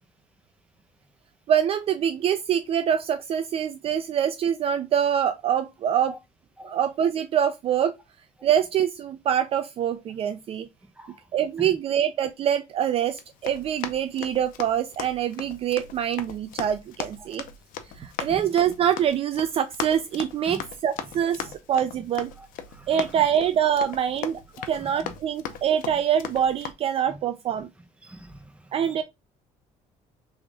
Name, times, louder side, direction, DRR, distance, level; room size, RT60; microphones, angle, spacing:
voice 1, 1.5-6.1 6.6-7.9 8.4-10.7 11.3-17.4 18.0-22.3 22.9-24.4 24.7-27.7 28.7-29.0, right 9 dB, 45° right, 0.4 m, -25 dB
voice 2, 10.9-11.8 17.2-17.4 18.0-18.5 20.4-20.6 21.4-21.5 22.4-23.2 24.6-25.1 25.5-25.6 25.8-26.0 27.1-27.2 28.0-29.0, right 1 dB, 10° right, 0.8 m, -44 dB
Run, 13.1-26.7, left 8 dB, 80° left, 0.7 m, -38 dB
3.4 x 3.4 x 3.9 m
cardioid pair, 145°, 14 cm